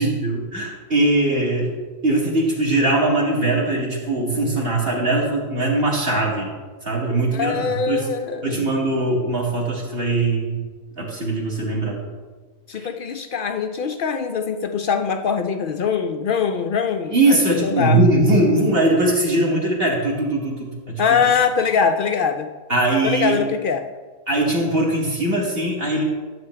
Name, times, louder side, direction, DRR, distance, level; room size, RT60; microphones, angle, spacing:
voice 1, 0.0-1.7 2.0-6.5 6.8-8.1 8.4-10.6 11.0-12.0 12.8-12.9 17.1-21.0 22.7-23.4 24.3-26.0, right 2 dB, 45° right, -3 dB, 2.2 m, -20 dB
voice 2, 7.3-8.6 12.7-18.0 21.0-22.5 23.0-23.8, left 6 dB, 75° left, 7 dB, 0.4 m, -22 dB
13.5 x 8.0 x 3.2 m, 1.4 s
omnidirectional pair, 1.4 m